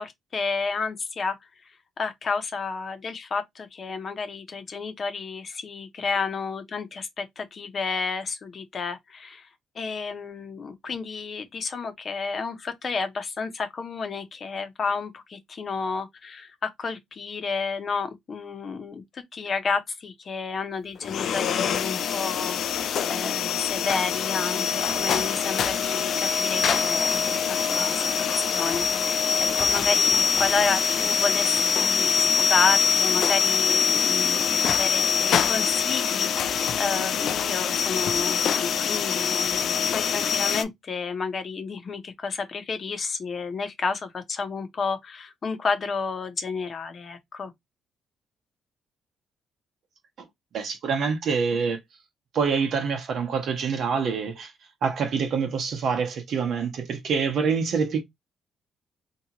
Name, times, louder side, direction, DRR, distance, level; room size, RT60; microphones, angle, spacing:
voice 1, 0.0-1.4 1.6-1.7 2.0-9.5 9.7-29.3 29.5-47.5, left 4 dB, 45° left, 0.7 m, -31 dB
sound 1, 21.0-40.6, left 7 dB, 65° left, 0.3 m, -24 dB
voice 2, 50.5-51.8 52.3-54.5 54.8-58.0, right 5 dB, 65° right, 0.8 m, -26 dB
2.8 x 2.3 x 2.8 m
cardioid pair, 90°, 0 cm